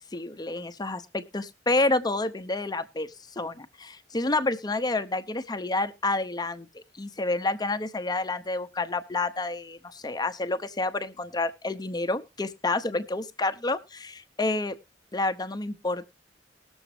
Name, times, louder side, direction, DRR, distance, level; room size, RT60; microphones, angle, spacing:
voice 1, 0.1-14.8 15.1-16.1, left 2 dB, 20° left, 11 dB, 0.7 m, -29 dB
19.5 x 7.1 x 3.2 m, 0.26 s
head